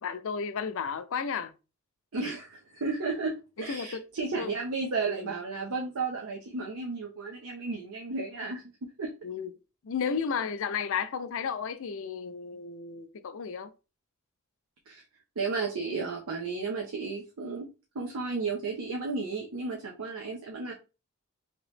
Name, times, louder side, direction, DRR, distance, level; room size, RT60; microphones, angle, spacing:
voice 1, 0.0-1.5 3.6-4.0 4.4-4.6 5.1-5.3 9.2-9.5 9.8-13.7, left 6 dB, 65° left, 0.5 m, -33 dB
voice 2, 2.1-8.6 9.0-9.1 14.9-15.0 15.4-17.7 17.9-20.7, right 4 dB, 85° right, 0.7 m, -33 dB
3.0 x 2.9 x 3.2 m
head